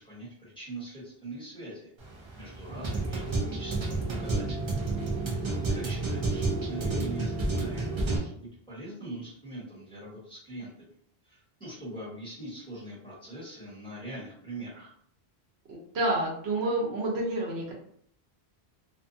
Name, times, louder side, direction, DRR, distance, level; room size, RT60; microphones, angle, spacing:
voice 1, 0.0-1.9 2.4-4.7 5.2-10.9 11.2-14.9, right 1 dB, 5° left, -9 dB, 1.2 m, -42 dB
sound 1, 2.0-8.2, right 3 dB, 40° right, 0.4 m, -30 dB
voice 2, 15.7-17.7, right 1 dB, 80° right, -2 dB, 1.0 m, -29 dB
2.6 x 2.3 x 2.6 m, 0.64 s
omnidirectional pair, 1.1 m